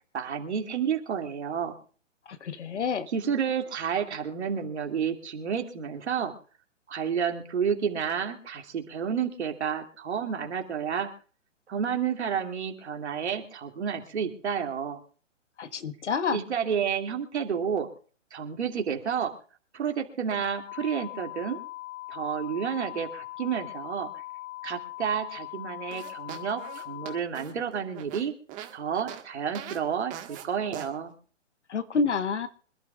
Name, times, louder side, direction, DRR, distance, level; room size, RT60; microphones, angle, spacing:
voice 1, 0.1-1.8 3.1-6.3 6.9-11.1 11.7-15.0 16.3-17.9 18.3-19.3 19.7-21.6 22.1-24.2 24.6-28.3 28.7-31.1, right 7 dB, 60° right, 3 dB, 2.7 m, -30 dB
voice 2, 2.4-3.1 15.6-16.4 31.7-32.5, left 5 dB, 65° left, 11 dB, 1.3 m, -28 dB
sound 1, 20.7-27.2, left 19 dB, 45° left, 4.4 m, -40 dB
sound 2, 25.9-28.7 29.1-29.2 29.5-29.8 30.1-30.4 30.7-30.9, right 11 dB, 20° right, 1.6 m, -41 dB
26.0 x 12.0 x 2.5 m, 0.42 s
figure-of-eight pair, 130°, 37 cm